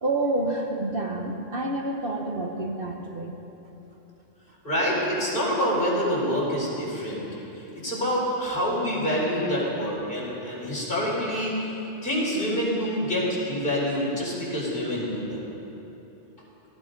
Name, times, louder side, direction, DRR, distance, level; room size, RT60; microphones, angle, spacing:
voice 1, 0.0-3.4, right 2 dB, 50° right, 1 dB, 1.5 m, -28 dB
voice 2, 4.6-7.3 7.5-11.6 12.0-15.5, equal, 45° left, -6 dB, 4.5 m, -26 dB
18.0 x 15.5 x 5.3 m, 3.0 s
omnidirectional pair, 1.2 m